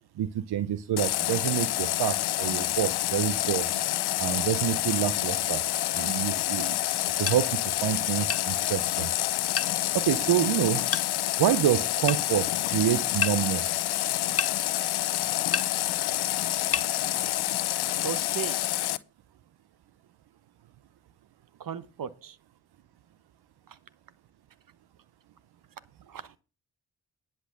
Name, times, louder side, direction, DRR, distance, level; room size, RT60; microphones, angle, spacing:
voice 1, 0.2-3.7 4.2-5.6 5.9-6.8 7.2-9.1 9.9-10.9 11.4-13.9, right 11 dB, 75° right, 0.8 m, -27 dB
Water tap faucet, 1.0-19.0, left 15 dB, 75° left, 0.7 m, -28 dB
sound 1, 7.3-7.4 8.3-8.5 9.6-9.7 10.9-11.1 12.1-12.2 13.2-13.4 14.4-14.5 15.5-15.7 16.7-16.9, left 6 dB, 35° left, 1.0 m, -28 dB
voice 2, 18.0-18.6 21.6-22.4 26.1-26.4, right 9 dB, 55° right, 1.2 m, -36 dB
10.5 x 6.2 x 6.3 m
supercardioid pair, 45°, 39 cm